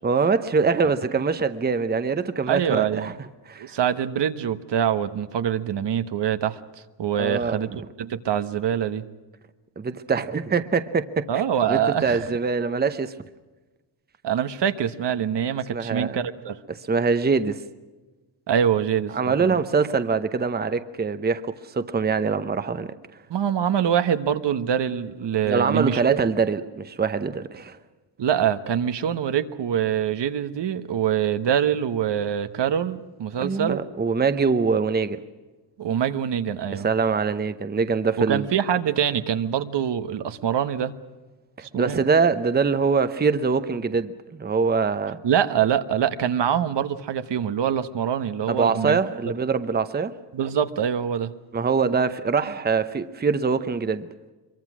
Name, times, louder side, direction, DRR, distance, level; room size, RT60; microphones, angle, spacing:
voice 1, 0.0-3.1 3.5-3.7 7.1-7.6 9.8-11.3 11.7-13.1 15.7-16.2 16.9-17.6 19.1-22.9 25.5-27.8 33.4-35.2 36.7-38.5 41.6-45.2 48.5-50.1 51.5-54.1, right 5 dB, 20° right, 0.8 m, -23 dB
voice 2, 2.5-3.1 3.6-6.6 7.0-7.7 8.0-9.0 11.3-12.3 14.2-16.6 18.5-19.1 19.4-19.6 23.3-26.2 28.2-33.8 35.8-36.9 38.3-40.9 41.7-42.0 45.2-49.0 50.3-51.3, right 9 dB, 70° right, 1.2 m, -24 dB
24.5 x 23.5 x 6.2 m
wide cardioid pair, 150°, 43 cm